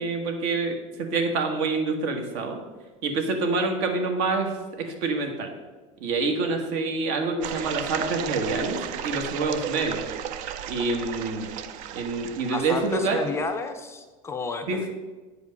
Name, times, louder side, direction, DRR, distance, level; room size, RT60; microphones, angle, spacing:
voice 1, 0.0-2.6 3.0-4.5 4.8-5.5 6.0-8.8 9.0-10.0 10.7-11.5 11.9-13.2 14.7-14.8, right 3 dB, 65° right, 4 dB, 1.5 m, -26 dB
sound 1, 7.4-13.5, right 10 dB, 50° right, 0.5 m, -34 dB
voice 2, 12.4-14.9, left 3 dB, 15° left, 7 dB, 0.5 m, -31 dB
8.5 x 5.1 x 5.2 m, 1.3 s
supercardioid pair, 150°, 17 cm